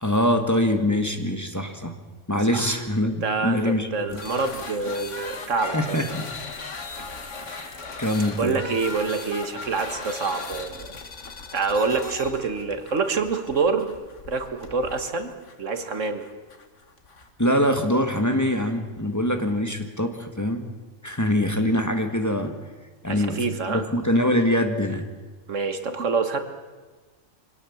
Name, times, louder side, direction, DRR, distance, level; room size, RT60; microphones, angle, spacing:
voice 1, 0.0-2.0 2.3-4.2 5.6-6.3 7.4-8.6 17.4-20.7 21.0-22.6 23.0-25.1, left 1 dB, 15° left, 5 dB, 1.6 m, -24 dB
voice 2, 3.2-6.0 8.4-10.9 11.5-13.9 14.3-15.3 15.6-16.2 23.1-23.9 25.5-26.4, right 4 dB, 85° right, 8 dB, 1.9 m, -26 dB
sound 1, 4.1-17.3, left 4 dB, 75° left, 2.1 m, -38 dB
24.5 x 18.0 x 7.2 m, 1.3 s
omnidirectional pair, 1.3 m